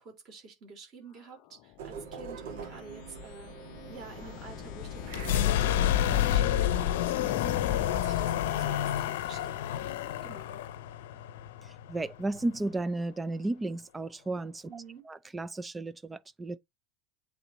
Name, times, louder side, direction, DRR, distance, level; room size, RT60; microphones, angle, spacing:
voice 1, 0.0-3.6 3.9-10.6 14.7-15.0, right 4 dB, 30° right, 3.0 m, -49 dB
sound 1, 1.8-8.9, right 5 dB, 75° right, 2.0 m, -45 dB
sound 2, 2.5-8.9, left 10 dB, 40° left, 0.5 m, -35 dB
sound 3, 5.1-12.8, left 11 dB, 90° left, 0.7 m, -30 dB
voice 2, 11.6-16.6, right 2 dB, 10° right, 0.4 m, -34 dB
8.4 x 3.8 x 3.0 m
supercardioid pair, 180°, 0 cm